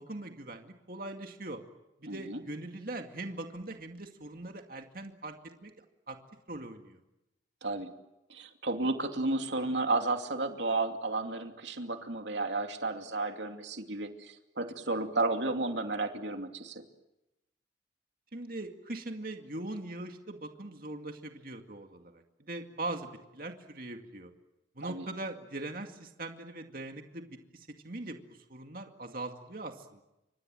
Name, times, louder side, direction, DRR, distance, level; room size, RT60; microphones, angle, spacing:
voice 1, 0.0-1.6 2.0-5.3 5.6-6.2 6.5-7.0 18.3-24.3 24.8-27.3 27.5-28.2 28.5-30.0, right 2 dB, 50° right, 4 dB, 2.2 m, -41 dB
voice 2, 2.1-2.4 7.6-7.9 8.3-16.8 24.8-25.0, right 2 dB, 70° right, 5 dB, 2.7 m, -32 dB
28.5 x 25.0 x 7.8 m, 0.94 s
head